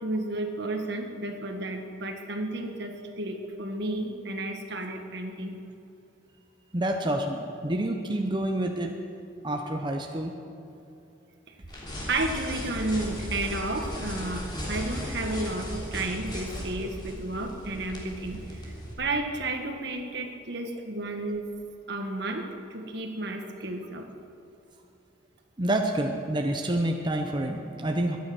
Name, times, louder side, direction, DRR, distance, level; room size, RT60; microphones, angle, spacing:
voice 1, 0.0-5.6 12.1-21.5 21.9-22.4 22.7-24.1, right 2 dB, 60° right, 4 dB, 1.6 m, -32 dB
voice 2, 6.7-8.9 9.4-10.3 15.8-15.9 25.6-28.2, right 1 dB, 25° right, 3 dB, 0.8 m, -28 dB
sound 1, 11.7-18.9, equal, 25° left, 3.3 m, -36 dB
23.0 x 9.5 x 6.1 m, 2.8 s
head